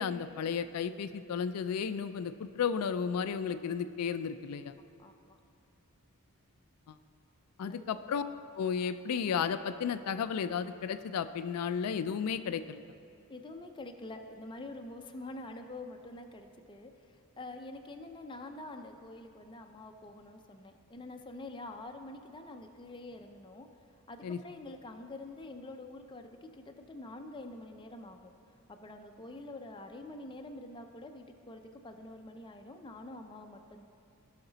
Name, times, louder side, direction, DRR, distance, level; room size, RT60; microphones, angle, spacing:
voice 1, 0.0-4.7 6.9-7.0 7.6-8.2 8.6-12.8 24.2-24.4, left 7 dB, 85° left, 11 dB, 0.4 m, -33 dB
voice 2, 4.8-5.4 7.7-7.8 13.3-23.7 24.1-28.3 28.7-33.8, left 2 dB, 20° left, 5 dB, 0.5 m, -46 dB
16.5 x 5.8 x 4.0 m, 2.6 s
head